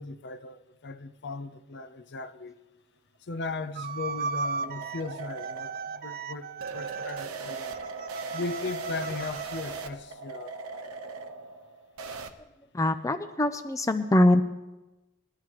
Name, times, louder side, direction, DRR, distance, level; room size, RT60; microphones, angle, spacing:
voice 1, 0.0-2.6 3.3-7.8 8.3-10.5, left 3 dB, 55° left, 0.6 m, -37 dB
sound 1, 3.3-12.3, right 3 dB, 75° right, 1.0 m, -39 dB
sound 2, 3.8-9.7, right 5 dB, 45° right, 0.4 m, -37 dB
voice 2, 12.7-14.4, left 1 dB, 15° left, 0.4 m, -23 dB
20.0 x 11.5 x 3.1 m
head